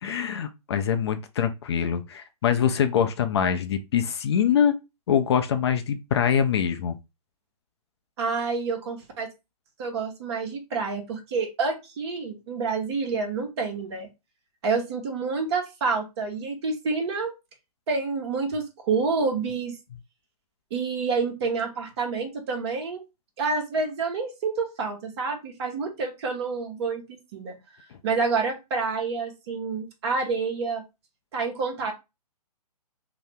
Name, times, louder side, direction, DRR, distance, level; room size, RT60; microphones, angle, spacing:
voice 1, 0.0-4.8 5.1-7.0, left 8 dB, 40° left, 0.4 m, -24 dB
voice 2, 8.2-9.3 9.8-14.1 14.6-17.3 17.9-19.8 20.7-23.0 23.4-27.5 28.0-30.8 31.3-31.9, right 4 dB, 40° right, 1.0 m, -28 dB
2.7 x 2.0 x 3.4 m
hypercardioid pair, 135°, 20 cm